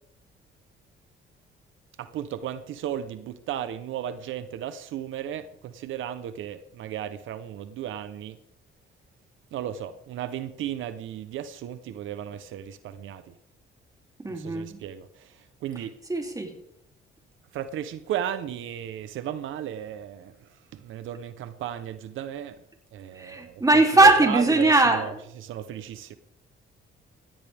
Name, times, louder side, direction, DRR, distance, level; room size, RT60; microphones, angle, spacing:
voice 1, 2.0-8.4 9.5-13.3 14.3-15.9 17.5-22.6 22.9-26.2, right 10 dB, 80° right, 0.9 m, -35 dB
voice 2, 14.2-14.8 16.1-16.5 23.2-25.1, right 2 dB, 15° right, 3.0 m, -20 dB
18.0 x 15.5 x 3.5 m
cardioid pair, 90°, 20 cm